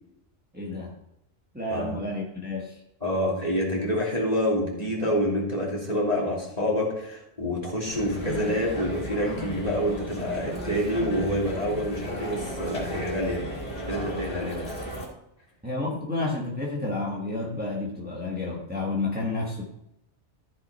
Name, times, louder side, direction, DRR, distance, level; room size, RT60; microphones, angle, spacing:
voice 1, 0.5-0.9 1.5-2.8 15.6-19.6, left 2 dB, 10° right, -2 dB, 1.4 m, -30 dB
voice 2, 3.0-13.4 13.9-14.7, equal, 35° left, -4 dB, 2.9 m, -27 dB
sound 1, 7.8-15.1, right 1 dB, 55° left, 2.9 m, -34 dB
14.0 x 6.1 x 4.3 m, 0.82 s
omnidirectional pair, 1.2 m